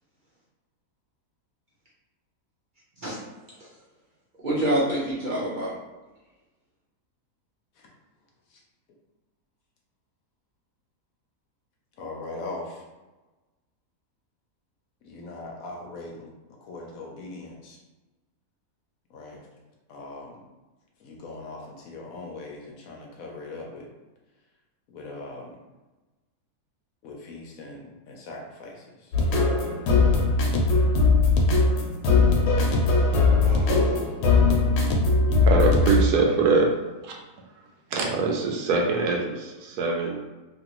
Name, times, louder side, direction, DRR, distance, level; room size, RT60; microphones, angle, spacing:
voice 1, 4.4-5.7 33.4-34.0, right 1 dB, 45° right, -8 dB, 0.6 m, -27 dB
voice 2, 12.0-12.8 15.0-16.3 16.6-17.8 19.1-19.4 19.9-20.4 21.0-23.9 24.9-25.6 27.0-29.1 30.5-30.7, left 2 dB, 70° left, -1 dB, 0.9 m, -40 dB
sound 1, 29.1-36.1, left 3 dB, 85° left, 1.2 m, -20 dB
voice 3, 35.1-36.7 37.0-37.1 37.9-40.2, right 4 dB, 80° right, 0 dB, 1.1 m, -24 dB
3.0 x 2.5 x 2.9 m, 1.2 s
omnidirectional pair, 1.7 m